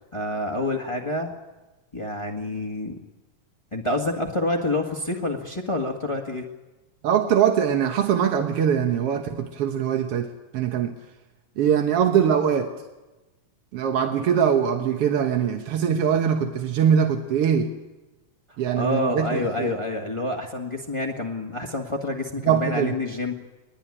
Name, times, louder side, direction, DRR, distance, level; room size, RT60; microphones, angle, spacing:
voice 1, 0.1-1.3 1.9-3.0 3.7-6.5 18.5-23.3, left 2 dB, 25° left, 1 dB, 0.7 m, -28 dB
voice 2, 7.0-10.9 11.6-12.7 13.7-17.7 18.6-19.7 22.5-22.9, right 8 dB, 60° right, 4 dB, 1.8 m, -22 dB
21.5 x 20.5 x 9.8 m, 1.1 s
omnidirectional pair, 3.6 m